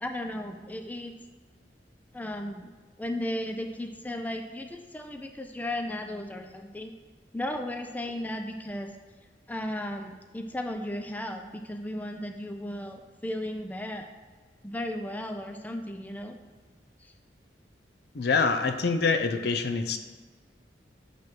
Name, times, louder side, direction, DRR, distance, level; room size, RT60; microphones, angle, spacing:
voice 1, 0.0-1.1 2.1-2.7 3.0-6.9 7.3-8.9 9.5-14.1 14.6-16.4 17.0-17.1, left 1 dB, 10° left, 5 dB, 0.4 m, -35 dB
voice 2, 18.1-20.0, left 4 dB, 65° left, 7 dB, 0.6 m, -25 dB
8.2 x 3.2 x 5.9 m, 1.4 s
head